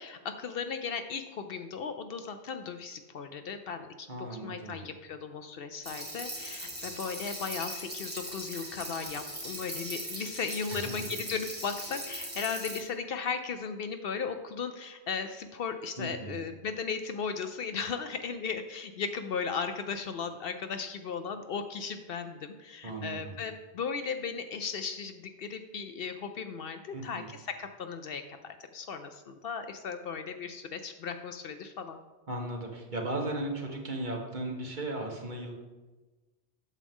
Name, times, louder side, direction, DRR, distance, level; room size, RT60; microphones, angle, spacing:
voice 1, 0.0-32.0, left 5 dB, 65° left, 8 dB, 0.7 m, -36 dB
voice 2, 4.1-4.8 10.7-11.1 16.0-16.4 22.8-23.2 26.9-27.3 32.3-35.5, right 2 dB, 45° right, 0 dB, 1.4 m, -36 dB
sound 1, 5.8-12.8, right 1 dB, 10° right, 1.9 m, -40 dB
8.3 x 7.4 x 3.6 m, 1.2 s
omnidirectional pair, 1.1 m